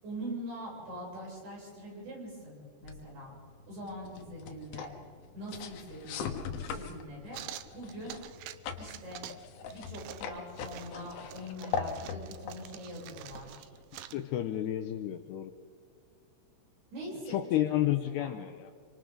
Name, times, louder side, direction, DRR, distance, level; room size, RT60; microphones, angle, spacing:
voice 1, 0.0-3.4 3.7-4.9 5.3-7.4 7.7-8.2 8.8-9.3 9.6-13.7 16.9-18.4, equal, 55° right, -4 dB, 9.4 m, -43 dB
sound 1, 2.8-14.0, left 6 dB, 65° left, 2.8 m, -41 dB
sound 2, 7.3-8.6 8.8-9.4 9.7-14.2, right 13 dB, 85° right, 2.3 m, -47 dB
voice 2, 13.9-15.5 17.3-18.7, left 13 dB, 85° left, 7 dB, 2.4 m, -31 dB
26.5 x 25.5 x 3.8 m, 2.2 s
omnidirectional pair, 5.5 m